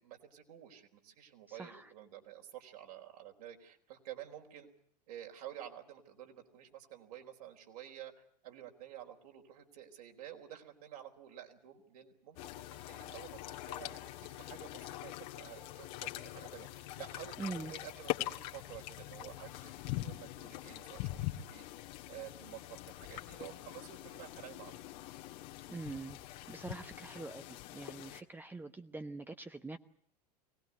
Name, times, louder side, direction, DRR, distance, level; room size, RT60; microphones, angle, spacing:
voice 1, 0.0-4.7 5.1-21.7 22.1-24.8, right 11 dB, 65° right, 2 dB, 4.3 m, -51 dB
voice 2, 1.5-1.9 17.4-17.7 25.7-29.8, right 3 dB, 10° right, 7 dB, 1.0 m, -44 dB
sound 1, 12.4-28.2, left 16 dB, 50° left, 1.8 m, -43 dB
24.0 x 19.0 x 9.7 m, 0.67 s
figure-of-eight pair, 85°, 21 cm